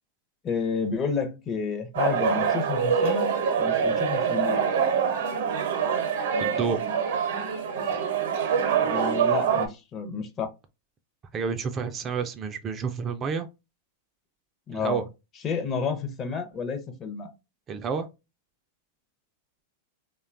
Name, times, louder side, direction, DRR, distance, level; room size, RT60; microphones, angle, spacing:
voice 1, 0.4-4.7 8.8-10.5 14.7-15.0 15.4-17.3, left 5 dB, 30° left, 0.6 m, -30 dB
sound 1, 1.9-9.7, right 7 dB, 75° right, 0.7 m, -25 dB
voice 2, 6.4-6.8 11.3-13.5 14.7-15.0 17.7-18.1, right 5 dB, 30° right, 0.3 m, -29 dB
2.7 x 2.2 x 2.5 m
hypercardioid pair, 120°, 0 cm